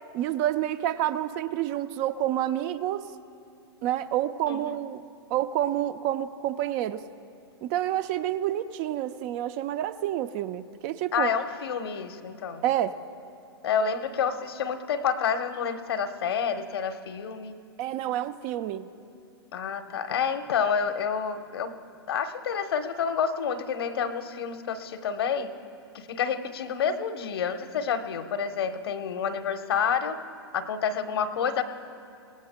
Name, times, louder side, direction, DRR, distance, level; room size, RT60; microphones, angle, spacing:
voice 1, 0.1-3.1 3.8-5.0 5.3-7.0 7.6-11.3 12.6-13.0 17.8-18.9, right 12 dB, 40° right, 11 dB, 0.7 m, -28 dB
voice 2, 11.1-12.6 13.6-17.5 19.5-21.7 22.1-25.5 25.9-30.2 30.5-31.6, left 7 dB, 65° left, 8 dB, 1.1 m, -29 dB
26.0 x 18.0 x 2.2 m, 2.4 s
hypercardioid pair, 110°, 14 cm